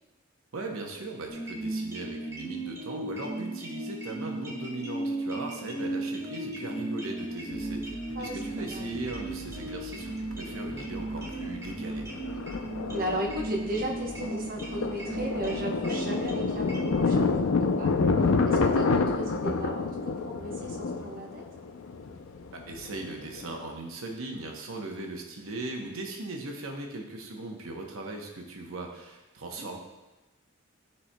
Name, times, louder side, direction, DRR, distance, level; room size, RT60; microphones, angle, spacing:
voice 1, 0.5-7.9 8.2-12.1 22.5-29.8, right 2 dB, 85° right, 1 dB, 0.9 m, -38 dB
sound 1, 1.3-17.0, right 1 dB, 15° right, 1.2 m, -36 dB
Thunder, 7.5-7.6 8.9-9.8 10.0-10.1 10.5-10.8 11.2-23.6, left 4 dB, 90° left, 0.5 m, -28 dB
sound 2, 7.5-19.3, right 1 dB, 55° left, 1.5 m, -48 dB
voice 2, 8.1-8.9 12.9-17.9 18.2-21.4 29.6-29.7, right 1 dB, 45° right, -2 dB, 0.9 m, -36 dB
12.5 x 4.3 x 2.2 m, 1.0 s
head